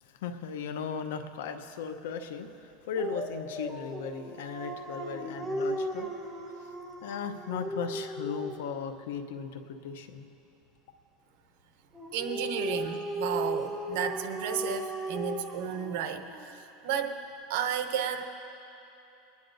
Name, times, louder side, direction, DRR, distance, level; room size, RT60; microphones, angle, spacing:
voice 1, 0.0-6.1 6.6-6.7 7.0-10.3, left 6 dB, 85° left, 8 dB, 0.7 m, -37 dB
Dog, 2.9-8.8 11.9-16.5, equal, 10° right, 1.0 m, -36 dB
voice 2, 12.1-17.2 17.5-18.3, right 8 dB, 70° right, 6 dB, 0.8 m, -33 dB
24.5 x 9.4 x 2.6 m, 2.9 s
supercardioid pair, 140°, 0 cm